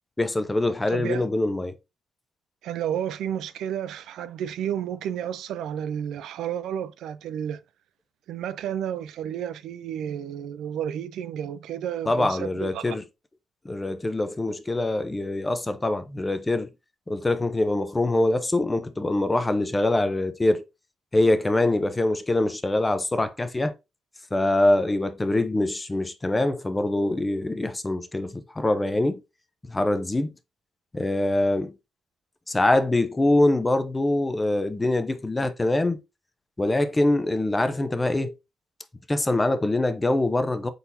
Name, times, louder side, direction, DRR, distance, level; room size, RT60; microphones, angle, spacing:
voice 1, 0.2-1.8 12.1-13.0 13.6-16.7 17.1-20.6 21.1-23.7 24.3-29.2 29.6-30.3 30.9-31.7 32.5-36.0 36.6-38.3 39.1-40.7, left 2 dB, 15° left, 0.5 m, -24 dB
voice 2, 0.9-1.3 2.6-7.6 8.3-13.0, right 9 dB, 80° right, 0.3 m, -31 dB
4.2 x 3.9 x 2.6 m
cardioid pair, 90°, 0 cm